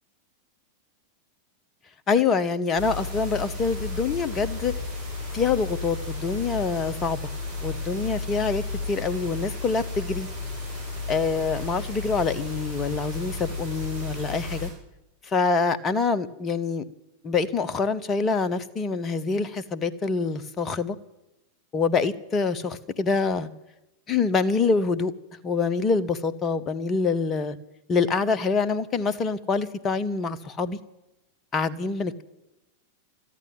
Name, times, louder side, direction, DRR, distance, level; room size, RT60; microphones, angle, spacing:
voice 1, 2.1-4.8 5.3-7.2 7.6-10.3 11.1-14.7 15.2-16.8 17.2-21.0 21.7-23.5 24.1-25.1 25.4-27.6 27.9-30.8 31.5-32.2, left 4 dB, 25° left, 14 dB, 1.0 m, -25 dB
sound 1, 2.7-14.7, left 3 dB, 70° right, 7.5 m, -33 dB
14.0 x 11.0 x 9.3 m, 0.93 s
figure-of-eight pair, 90°, 0 cm